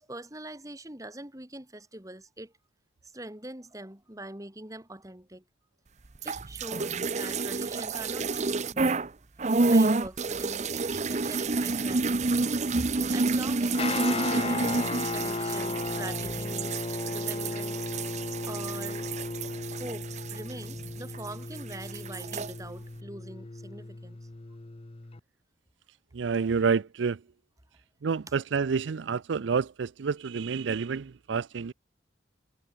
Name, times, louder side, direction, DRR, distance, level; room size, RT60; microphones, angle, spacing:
voice 1, 0.0-2.5 3.0-5.4 6.2-9.0 9.7-12.3 13.1-14.7 15.1-16.8 17.1-19.2 19.7-24.2, right 1 dB, 20° right, 2.9 m, -43 dB
sound 1, 6.2-9.1 9.4-21.3 21.6-22.5, right 3 dB, 40° right, 0.8 m, -29 dB
Guitar, 13.7-25.2, left 3 dB, 30° left, 0.7 m, -35 dB
voice 2, 26.1-27.2 28.0-31.7, right 5 dB, 80° right, 0.5 m, -28 dB
head